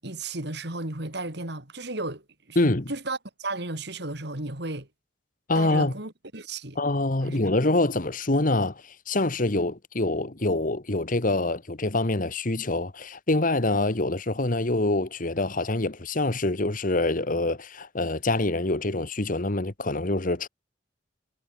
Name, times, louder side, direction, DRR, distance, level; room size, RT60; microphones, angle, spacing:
voice 1, 0.0-2.2 2.5-4.9 5.6-6.8 7.2-7.4, right 2 dB, 65° right, 3.8 m, -34 dB
voice 2, 2.5-2.9 5.5-5.9 6.8-20.5, left 2 dB, 45° left, 1.6 m, -25 dB
head